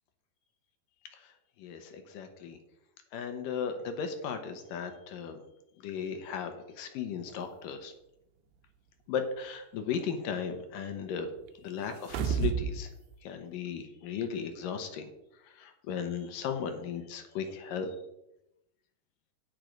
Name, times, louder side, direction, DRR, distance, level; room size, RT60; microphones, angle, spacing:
voice 1, 1.6-2.6 3.1-5.4 5.8-7.9 9.1-11.3 11.6-12.9 13.2-15.1 15.6-17.9, left 7 dB, 70° left, 7 dB, 2.4 m, -36 dB
sound 1, 11.9-12.8 13.1-13.2, right 7 dB, 85° right, 2.8 m, -30 dB
9.5 x 9.3 x 5.1 m, 0.88 s
omnidirectional pair, 4.4 m